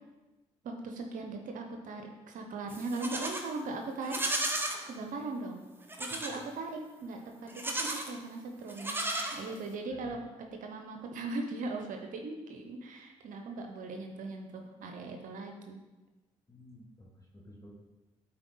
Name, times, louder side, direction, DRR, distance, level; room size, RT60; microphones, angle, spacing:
voice 1, 0.6-4.5 4.9-5.7 6.0-9.0 9.3-10.3 10.6-15.8, right 3 dB, 65° right, 4 dB, 0.8 m, -39 dB
Livestock farm animals working animals, 2.7-3.5 4.0-4.8 5.9-6.4 7.5-8.1 8.7-9.7, right 1 dB, 15° right, 1.2 m, -34 dB
voice 2, 9.9-10.2 16.5-17.7, left 1 dB, 25° left, -2 dB, 1.5 m, -53 dB
8.9 x 4.3 x 3.9 m, 1.1 s
hypercardioid pair, 55°, 15 cm